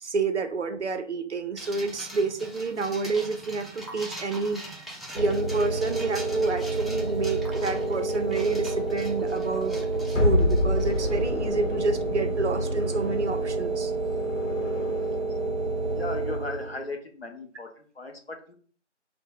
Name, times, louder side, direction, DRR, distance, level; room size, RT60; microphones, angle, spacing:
voice 1, 0.0-13.9, right 4 dB, 65° right, 8 dB, 0.5 m, -29 dB
sound 1, 1.6-11.1, right 1 dB, ahead, 0.3 m, -43 dB
sound 2, 5.2-16.9, right 3 dB, 35° right, 0.8 m, -29 dB
sound 3, 10.2-15.3, left 2 dB, 90° left, 0.8 m, -29 dB
voice 2, 15.9-18.5, left 2 dB, 55° left, 3 dB, 0.6 m, -37 dB
2.3 x 2.1 x 3.3 m, 0.43 s
figure-of-eight pair, 175°, 37 cm